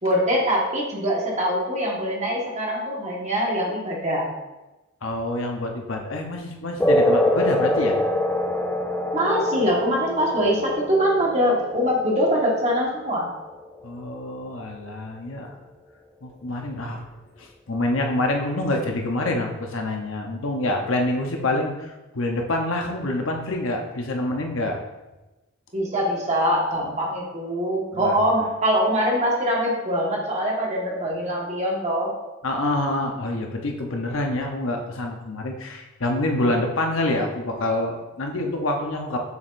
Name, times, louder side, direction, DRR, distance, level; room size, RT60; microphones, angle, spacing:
voice 1, 0.0-4.3 9.1-13.3 25.7-32.1, equal, 35° right, -3 dB, 1.6 m, -23 dB
voice 2, 5.0-8.0 13.8-15.5 16.2-17.0 17.4-24.8 27.9-28.2 32.4-39.2, left 1 dB, 70° left, 2 dB, 0.9 m, -26 dB
sound 1, 6.8-13.8, left 1 dB, 10° left, 0.4 m, -25 dB
7.0 x 6.3 x 2.6 m, 1.1 s
head